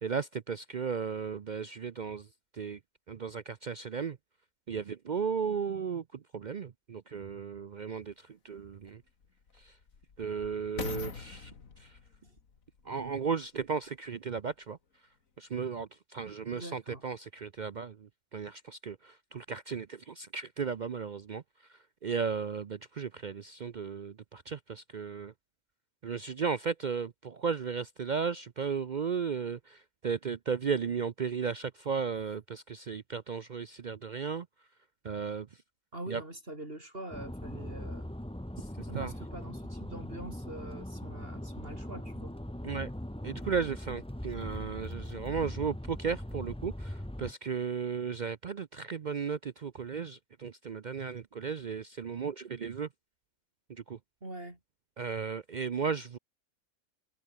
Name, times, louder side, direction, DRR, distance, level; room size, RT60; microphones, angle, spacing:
voice 1, 0.0-2.3 2.5-2.8 3.1-4.2 4.7-9.0 9.6-9.8 10.2-11.5 11.8-12.0 12.8-14.8 15.4-21.4 21.7-25.3 26.0-34.5 35.0-35.5 36.1-36.2 38.6-39.1 42.6-42.9 43.2-52.9 53.7-54.0 55.0-56.2, right 6 dB, 60° right, 0.4 m, -35 dB
sound 1, 7.8-7.9 8.6-13.9 14.5-14.6, left 5 dB, 65° left, 2.3 m, -44 dB
voice 2, 16.5-17.1 35.9-38.1 38.9-42.4 54.2-54.6, right 1 dB, 40° right, 5.3 m, -44 dB
sound 2, 37.1-47.3, left 1 dB, 5° left, 1.2 m, -40 dB
omnidirectional pair, 1.5 m